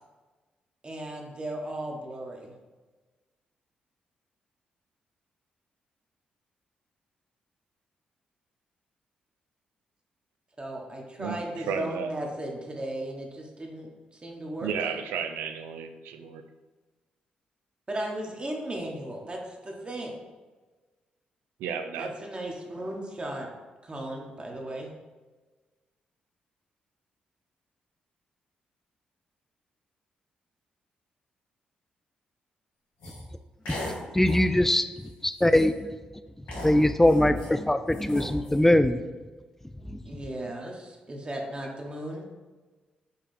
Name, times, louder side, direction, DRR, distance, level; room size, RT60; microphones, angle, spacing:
voice 1, 0.8-2.5 10.6-15.0 17.9-20.2 22.0-23.5 23.8-24.9 40.0-42.2, right 1 dB, 30° right, 0 dB, 1.1 m, -36 dB
voice 2, 11.2-12.1 14.6-16.4 21.6-22.1, right 6 dB, 90° right, 7 dB, 0.4 m, -33 dB
sound 1, 33.0-33.2 33.7-34.0 34.3-34.5 35.0-35.1 35.4-35.8 36.5-37.5 37.9-38.6, left 1 dB, 90° left, 1.4 m, -38 dB
voice 3, 34.1-34.9 35.2-35.9 36.6-39.0 39.9-40.0, left 1 dB, 10° left, 10 dB, 0.3 m, -22 dB
5.5 x 2.3 x 4.2 m, 1.3 s
supercardioid pair, 55°, 3 cm